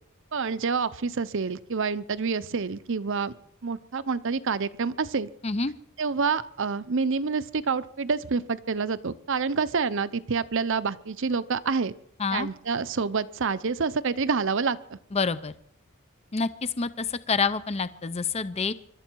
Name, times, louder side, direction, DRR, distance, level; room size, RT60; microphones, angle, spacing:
voice 1, 0.3-3.3 3.6-5.3 6.0-11.9 12.3-15.0, right 5 dB, 60° right, 15 dB, 0.7 m, -27 dB
voice 2, 15.1-15.5 16.3-18.7, left 4 dB, 30° left, 14 dB, 0.6 m, -27 dB
24.5 x 12.5 x 4.6 m, 0.71 s
head